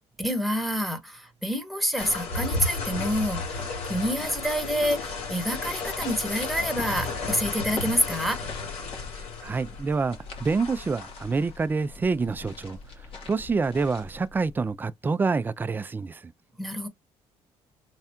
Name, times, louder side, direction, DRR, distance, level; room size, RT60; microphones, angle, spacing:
voice 1, 0.2-8.4 16.6-16.9, equal, ahead, 1.1 m, -28 dB
sound 1, 2.0-14.5, left 3 dB, 75° left, 1.9 m, -34 dB
sound 2, 5.5-14.3, left 3 dB, 55° left, 1.5 m, -44 dB
voice 2, 9.4-12.8 13.3-16.3, right 4 dB, 15° right, 0.3 m, -27 dB
3.3 x 2.3 x 4.3 m
cardioid pair, 110°, 11 cm